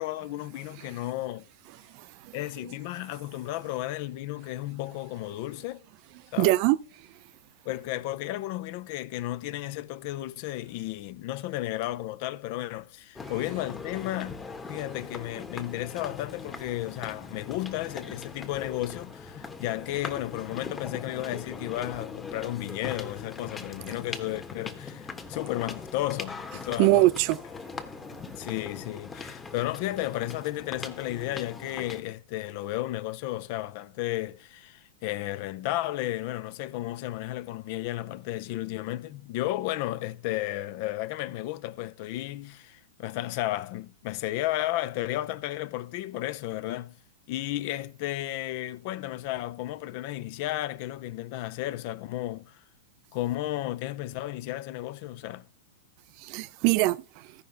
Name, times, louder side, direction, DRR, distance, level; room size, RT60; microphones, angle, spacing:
voice 1, 0.0-1.4 2.3-5.8 6.3-6.6 7.6-14.4 14.7-27.0 28.4-47.0 47.3-52.6 53.1-55.4, left 15 dB, 50° left, 0.6 m, -33 dB
voice 2, 1.9-2.4 6.4-6.8 26.8-27.4 56.2-57.3, right 18 dB, 45° right, 0.4 m, -23 dB
sound 1, 13.2-32.0, left 4 dB, 15° left, 1.2 m, -41 dB
15.0 x 5.6 x 3.8 m
hypercardioid pair, 105°, 0 cm